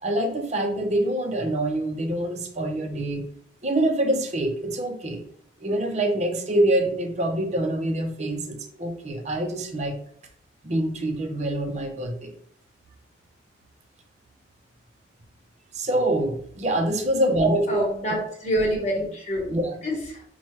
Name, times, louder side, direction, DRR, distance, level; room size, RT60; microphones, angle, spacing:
voice 1, 0.0-3.3 3.6-5.2 5.6-10.0 10.6-12.3 15.7-17.9 19.5-19.8, right 1 dB, 35° right, 4 dB, 0.6 m, -25 dB
voice 2, 17.7-19.5 19.8-20.2, equal, 35° left, -2 dB, 1.2 m, -27 dB
5.6 x 2.3 x 3.1 m, 0.62 s
head